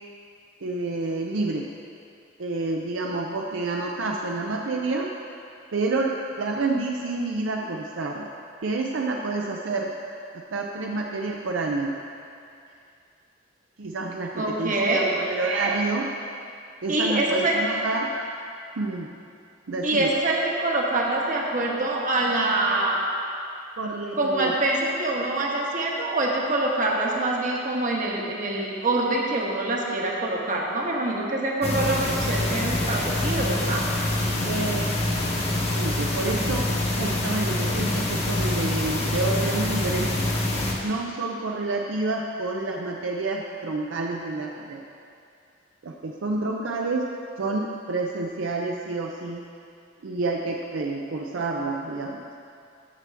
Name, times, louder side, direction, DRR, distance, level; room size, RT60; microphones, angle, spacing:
voice 1, 0.6-1.7 2.4-5.1 5.7-8.3 8.6-11.9 13.8-16.1 16.8-18.3 18.8-19.1 19.7-20.1 23.8-24.5 34.4-34.9 35.7-36.7 37.0-40.1 40.8-44.8 45.8-47.1 47.4-49.5 50.0-52.3, right 3 dB, 75° right, 0 dB, 0.6 m, -28 dB
voice 2, 14.3-15.0 16.9-17.6 19.8-23.0 24.2-33.8, right 2 dB, 45° right, -2 dB, 1.2 m, -25 dB
sound 1, 31.6-40.7, left 1 dB, 35° left, 1.1 m, -25 dB
13.5 x 6.0 x 3.4 m, 2.5 s
head